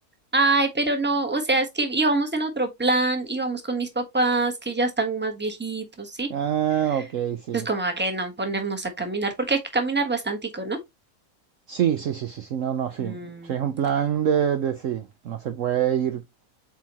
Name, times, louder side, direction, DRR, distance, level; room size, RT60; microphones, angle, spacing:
voice 1, 0.3-6.3 7.5-10.8 13.0-13.5, right 3 dB, 5° right, 1.2 m, -25 dB
voice 2, 6.3-7.7 11.7-16.2, right 9 dB, 60° right, 0.9 m, -25 dB
8.2 x 4.1 x 3.0 m
omnidirectional pair, 1.7 m